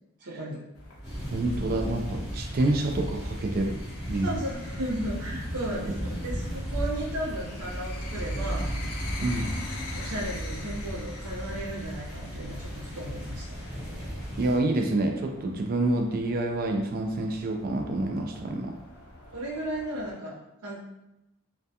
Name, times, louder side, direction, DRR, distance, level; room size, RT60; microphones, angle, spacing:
voice 1, 0.2-0.6 4.2-8.7 10.0-13.6 19.3-20.8, right 1 dB, 75° right, -4 dB, 0.7 m, -35 dB
sound 1, 0.7-20.1, equal, 70° left, 0.5 m, -42 dB
sound 2, 1.0-14.6, equal, ahead, 1.1 m, -36 dB
voice 2, 1.3-3.8 4.1-4.4 5.9-6.0 9.2-9.5 14.4-18.7, right 2 dB, 40° right, 3 dB, 0.3 m, -27 dB
2.3 x 2.2 x 2.7 m, 0.93 s
head